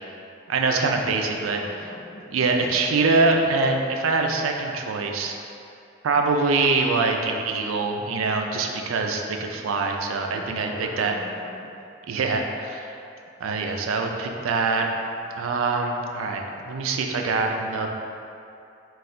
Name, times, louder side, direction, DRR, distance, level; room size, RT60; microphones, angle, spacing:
voice 1, 0.5-1.6 2.3-5.3 6.0-11.1 12.1-13.0 13.4-14.9 15.3-17.9, right 3 dB, 85° right, 3 dB, 0.4 m, -24 dB
voice 2, 1.4-2.2 10.3-11.7 16.4-16.5, left 1 dB, 85° left, -3 dB, 0.7 m, -41 dB
4.2 x 2.4 x 3.7 m, 2.6 s
head